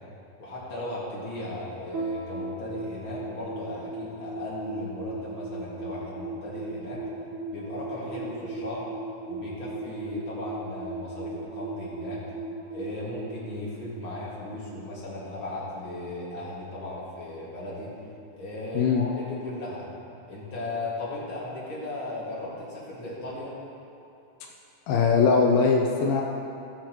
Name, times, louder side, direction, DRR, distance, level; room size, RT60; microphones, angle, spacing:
voice 1, 0.4-7.0 7.5-8.9 9.3-12.2 12.7-17.9 18.3-19.9 20.3-23.5, left 1 dB, 40° left, -7 dB, 2.4 m, -36 dB
sound 1, 1.9-14.4, right 2 dB, 60° right, 2.7 m, -37 dB
voice 2, 18.8-19.1 24.9-26.2, left 5 dB, 80° left, 0 dB, 2.4 m, -21 dB
18.0 x 7.4 x 3.1 m, 2.8 s
omnidirectional pair, 4.2 m